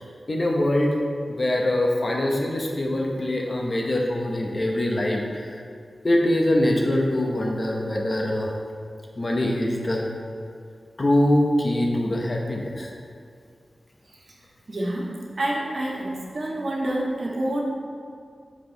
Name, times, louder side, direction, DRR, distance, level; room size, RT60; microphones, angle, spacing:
voice 1, 0.3-1.0 1.3-5.6 6.0-8.6 9.2-10.1 11.0-12.9, left 1 dB, 40° left, 0 dB, 1.0 m, -23 dB
voice 2, 14.7-15.1 15.4-17.6, right 1 dB, 60° right, -4 dB, 1.5 m, -27 dB
7.5 x 5.5 x 4.0 m, 2.3 s
wide cardioid pair, 95°, 0 cm